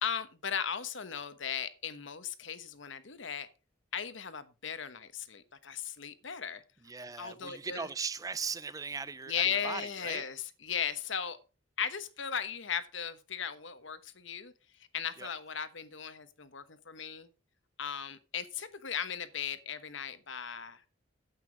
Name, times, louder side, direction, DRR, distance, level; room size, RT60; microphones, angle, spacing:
voice 1, 0.0-3.5 3.9-6.6 7.2-7.9 9.3-11.4 11.8-14.5 14.9-17.3 17.8-20.8, left 7 dB, 65° left, 1.1 m, -37 dB
voice 2, 6.8-10.3 15.2-15.3, right 5 dB, 15° right, 0.4 m, -38 dB
9.0 x 8.3 x 4.7 m
head